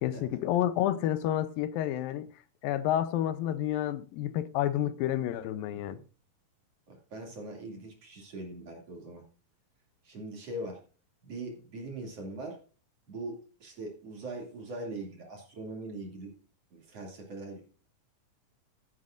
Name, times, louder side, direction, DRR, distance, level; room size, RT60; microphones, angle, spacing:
voice 1, 0.0-2.3 2.6-6.0, left 12 dB, 85° left, 2.5 m, -29 dB
voice 2, 5.7-6.0 6.9-9.2 10.0-10.8 11.2-12.6 13.1-16.3 16.7-17.7, right 2 dB, 45° right, 3.5 m, -41 dB
13.0 x 10.5 x 2.6 m
omnidirectional pair, 4.1 m